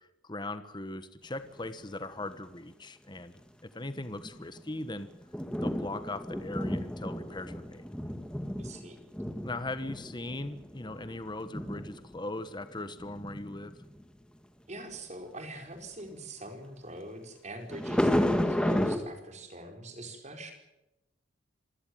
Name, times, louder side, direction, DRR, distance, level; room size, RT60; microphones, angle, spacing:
voice 1, 0.2-5.1 5.6-7.9 9.4-13.8, left 2 dB, 25° left, 12 dB, 1.2 m, -39 dB
sound 1, 1.7-1.8 2.2-2.3 3.2-3.3 3.9-14.0 17.7-19.0, equal, 5° left, 2.1 m, -32 dB
voice 2, 8.6-9.0 14.7-20.5, right 1 dB, 35° right, 5 dB, 4.7 m, -43 dB
27.0 x 16.5 x 9.2 m, 0.94 s
head